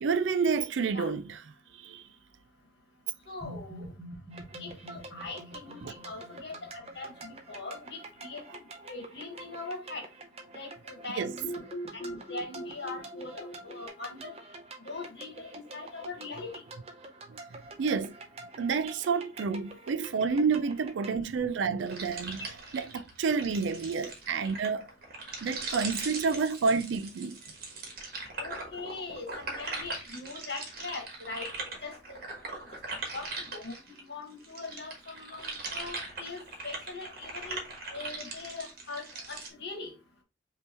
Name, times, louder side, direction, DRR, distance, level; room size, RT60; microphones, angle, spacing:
voice 1, 0.0-1.2 1.8-2.0 5.8-5.9 11.2-11.3 17.8-18.1 18.6-22.5 22.7-24.9 25.4-27.4, right 5 dB, 80° right, 0.4 m, -29 dB
voice 2, 3.3-3.8 4.6-6.5 6.9-8.4 8.8-10.1 10.5-11.4 11.9-14.3 14.8-16.5 28.4-32.2 33.1-37.6 37.9-39.9, left 3 dB, 65° left, 1.6 m, -41 dB
sound 1, 3.4-7.4 11.4-13.8, equal, 5° right, 2.3 m, -43 dB
sound 2, 4.3-21.2, right 2 dB, 35° right, 0.6 m, -47 dB
sound 3, 21.8-34.0 34.4-39.5, right 3 dB, 50° right, 1.2 m, -40 dB
5.3 x 2.9 x 2.9 m
head